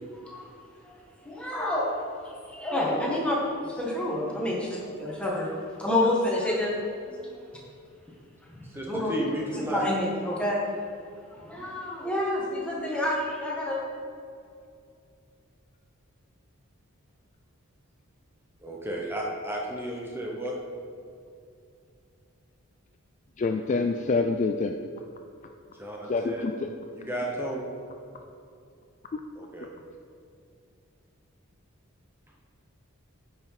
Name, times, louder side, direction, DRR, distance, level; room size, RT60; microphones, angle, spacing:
voice 1, 1.2-1.9 2.5-4.6 5.0-6.7 7.1-7.4 8.6-9.1 9.7-10.6 11.3-13.8, left 1 dB, 5° left, -4 dB, 1.5 m, -28 dB
voice 2, 8.6-9.9 18.6-20.5 25.8-26.5 26.9-27.7 29.4-29.7, right 1 dB, 10° right, -2 dB, 0.8 m, -33 dB
voice 3, 23.4-24.8 26.1-26.7, left 3 dB, 35° left, 5 dB, 0.3 m, -26 dB
9.4 x 5.7 x 4.8 m, 2.5 s
head